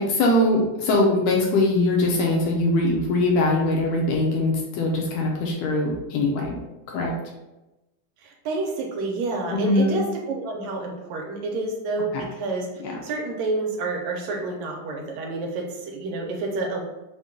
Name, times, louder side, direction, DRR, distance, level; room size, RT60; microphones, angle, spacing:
voice 1, 0.0-6.6 6.9-7.1 9.5-10.0 12.1-12.2 12.8-12.9, left 2 dB, 75° left, -1 dB, 1.7 m, -22 dB
voice 2, 8.2-16.8, right 3 dB, 80° right, 1 dB, 1.9 m, -29 dB
5.2 x 2.3 x 3.6 m, 1.0 s
omnidirectional pair, 3.3 m